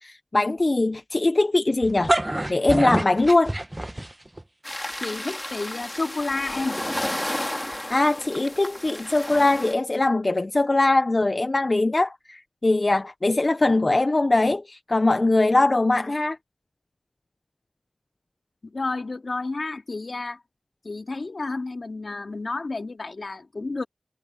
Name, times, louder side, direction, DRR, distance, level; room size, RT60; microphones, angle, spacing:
voice 1, 0.0-2.1 2.5-3.5 7.9-16.4, left 2 dB, 50° left, 0.7 m, -21 dB
sound 1, 1.8-4.4, right 1 dB, 25° right, 1.0 m, -26 dB
sound 2, 4.6-9.7, left 1 dB, 20° left, 2.2 m, -32 dB
voice 2, 5.0-6.8 18.6-20.4 20.8-23.8, left 3 dB, 70° left, 2.2 m, -30 dB
cardioid pair, 40°, 0 cm